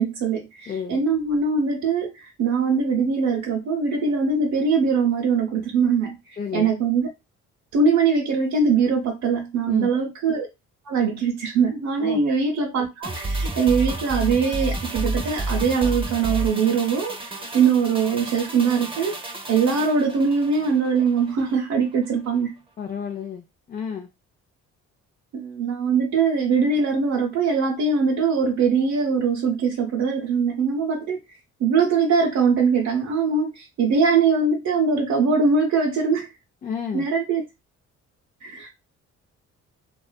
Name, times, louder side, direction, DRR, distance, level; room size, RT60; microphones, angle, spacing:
voice 1, 0.0-7.1 7.7-10.5 10.8-22.5 25.3-31.2 31.6-36.3 36.9-37.4 38.4-38.7, right 5 dB, 65° right, 0.7 m, -22 dB
voice 2, 0.7-1.0 6.4-6.7 9.7-9.9 12.0-12.2 22.8-24.1 36.6-37.1, left 7 dB, 30° left, 0.4 m, -31 dB
sound 1, 13.0-21.6 21.9-22.0, right 2 dB, 15° right, 0.7 m, -30 dB
2.5 x 2.4 x 2.2 m
cardioid pair, 90°, 30 cm